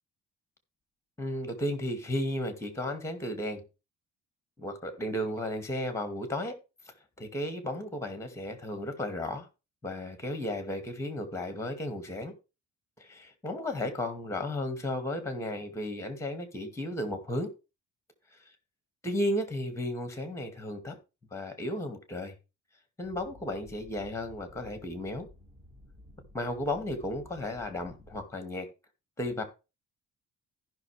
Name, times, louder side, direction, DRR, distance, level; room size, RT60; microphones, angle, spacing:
voice 1, 1.2-3.6 4.6-6.5 7.2-9.5 9.8-12.3 13.0-17.5 18.3-18.4 19.0-21.0 21.3-22.3 23.0-25.3 26.3-28.7 29.2-29.4, left 1 dB, 10° left, 8 dB, 2.1 m, -34 dB
sound 1, 23.0-28.3, left 1 dB, 20° right, 2.0 m, -54 dB
14.5 x 5.9 x 3.4 m, 0.29 s
cardioid pair, 135°, 30 cm